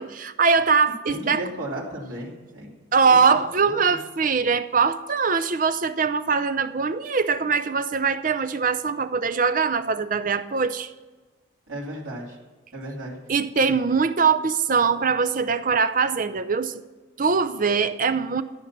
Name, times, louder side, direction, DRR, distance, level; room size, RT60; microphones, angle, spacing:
voice 1, 0.0-1.4 2.9-10.9 13.3-16.8 17.2-18.4, right 5 dB, 40° right, 0.6 m, -22 dB
voice 2, 1.1-2.7 3.1-3.2 3.6-3.8 11.7-12.4 12.7-13.2, right 1 dB, 85° right, 3.0 m, -34 dB
13.0 x 9.4 x 6.0 m
head